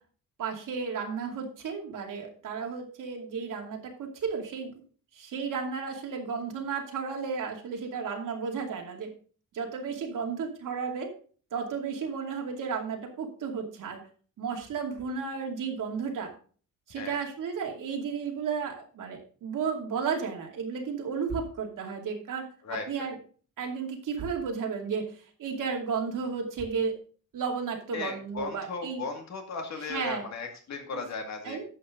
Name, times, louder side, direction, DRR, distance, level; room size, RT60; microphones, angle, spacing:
voice 1, 0.4-4.7 5.1-9.1 9.5-11.1 11.5-14.0 14.4-16.3 16.9-22.4 22.7-23.1 23.6-26.9 27.3-29.0 29.9-30.2 30.9-31.0 31.4-31.6, right 5 dB, 70° right, 2 dB, 2.6 m, -33 dB
voice 2, 22.6-23.1 27.9-31.6, left 4 dB, 55° left, 4 dB, 2.2 m, -36 dB
11.0 x 7.9 x 3.8 m, 0.41 s
wide cardioid pair, 165°, 33 cm